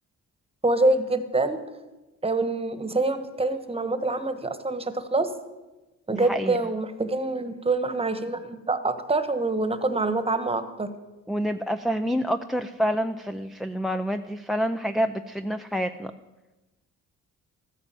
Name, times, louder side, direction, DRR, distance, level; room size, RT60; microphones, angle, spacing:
voice 1, 0.6-1.6 2.2-5.3 6.1-10.9, right 2 dB, 20° right, 11 dB, 1.4 m, -26 dB
voice 2, 6.1-6.6 11.3-16.1, equal, ahead, 9 dB, 0.5 m, -27 dB
14.0 x 9.8 x 7.7 m, 1.1 s
cardioid pair, 90°, 30 cm